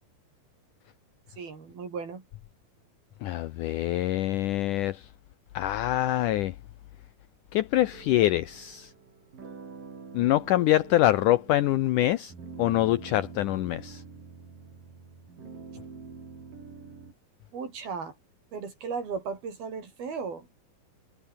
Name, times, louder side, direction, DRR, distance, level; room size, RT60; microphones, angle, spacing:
voice 1, 1.4-2.2 17.5-18.1 18.5-20.5, right 5 dB, 80° right, 7.0 m, -36 dB
voice 2, 3.2-5.0 5.6-6.5 7.5-8.9 10.1-12.3 12.6-14.0, left 14 dB, 75° left, 2.1 m, -25 dB
sound 1, 7.9-17.1, right 5 dB, 60° right, 7.1 m, -46 dB
omnidirectional pair, 4.3 m